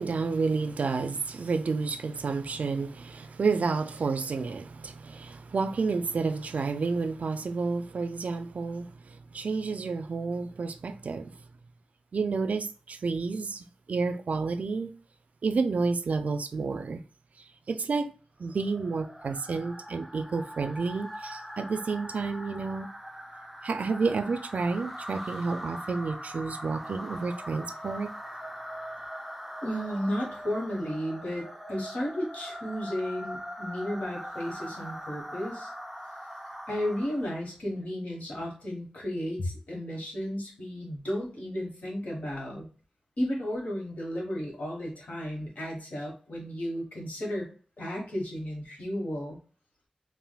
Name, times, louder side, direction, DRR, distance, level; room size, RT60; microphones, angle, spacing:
voice 1, 0.0-11.3 12.1-14.9 15.4-17.0 17.7-18.1 18.4-22.9 23.6-28.1, right 4 dB, 75° right, 0.3 m, -30 dB
sound 1, 18.5-37.4, equal, ahead, 0.4 m, -41 dB
voice 2, 29.6-35.7 36.7-42.7 43.2-47.5 47.8-49.4, equal, 80° left, 1.4 m, -33 dB
3.4 x 2.5 x 2.3 m
wide cardioid pair, 100°, 3 cm